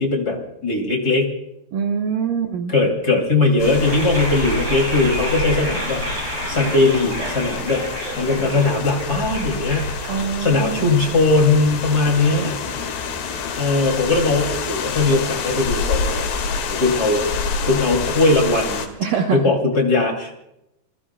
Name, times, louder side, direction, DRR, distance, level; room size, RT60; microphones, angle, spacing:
voice 1, 0.0-1.3 2.7-7.8 8.1-9.9 10.4-12.6 13.6-16.3 16.7-17.3 17.7-18.9 19.3-20.3, left 3 dB, 25° left, 1 dB, 2.4 m, -19 dB
voice 2, 1.7-2.7 10.1-10.9 19.0-19.4, right 6 dB, 70° right, 3 dB, 2.3 m, -23 dB
sound 1, 3.6-18.9, left 5 dB, 75° left, 4.0 m, -27 dB
sound 2, 3.6-13.7, right 1 dB, 35° right, 8.7 m, -32 dB
28.0 x 21.5 x 2.3 m, 0.83 s
omnidirectional pair, 5.0 m